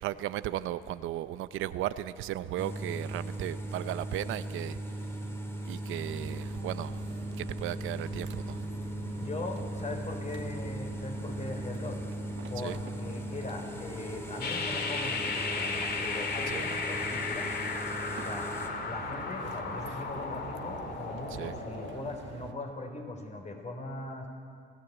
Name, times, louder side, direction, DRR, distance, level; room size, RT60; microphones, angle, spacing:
voice 1, 0.0-4.8 5.7-7.0 7.4-8.6 12.6-12.8 16.5-16.7 21.3-21.5, right 13 dB, 90° right, 14 dB, 0.7 m, -36 dB
sound 1, 2.6-18.7, right 1 dB, 10° left, 2.9 m, -38 dB
sound 2, 5.9-22.5, right 8 dB, 70° right, 1.3 m, -47 dB
voice 2, 9.2-12.0 12.5-17.5 18.2-24.3, left 2 dB, 35° left, 3 dB, 4.1 m, -40 dB
sound 3, 14.4-22.0, left 4 dB, 55° left, 2.5 m, -35 dB
26.0 x 16.0 x 8.1 m, 2.2 s
cardioid pair, 90°, 20 cm